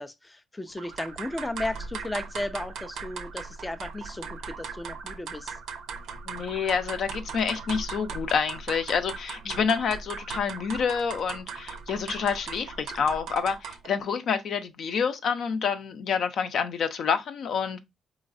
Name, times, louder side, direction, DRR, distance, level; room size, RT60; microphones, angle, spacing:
voice 1, 0.0-5.5 9.5-9.7, left 1 dB, 15° left, 0.4 m, -35 dB
sound 1, 0.8-14.0, right 5 dB, 80° right, 0.6 m, -38 dB
voice 2, 6.3-17.8, left 6 dB, 65° left, 0.6 m, -28 dB
4.0 x 3.1 x 2.5 m
cardioid pair, 90°, 0 cm